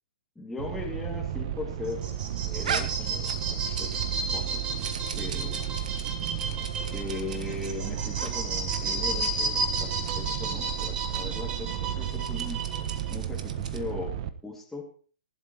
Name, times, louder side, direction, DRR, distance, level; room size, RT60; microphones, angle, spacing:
voice 1, 0.4-2.1 2.4-3.9 4.3-4.7 5.2-5.6 6.9-12.6 13.1-14.1 14.4-14.9, left 3 dB, 5° left, -1 dB, 2.1 m, -39 dB
sound 1, 0.6-14.3, right 11 dB, 40° right, 1.0 m, -33 dB
sound 2, 1.8-13.1, right 3 dB, 20° right, 3.1 m, -33 dB
sound 3, 2.6-4.1 4.4-7.7 8.1-8.3 8.6-8.8 9.1-9.3 9.7-10.1 10.7-10.9 11.1-11.2 12.0-13.9, right 6 dB, 55° right, 1.5 m, -39 dB
19.5 x 11.5 x 2.8 m, 0.40 s
figure-of-eight pair, 115°, 5 cm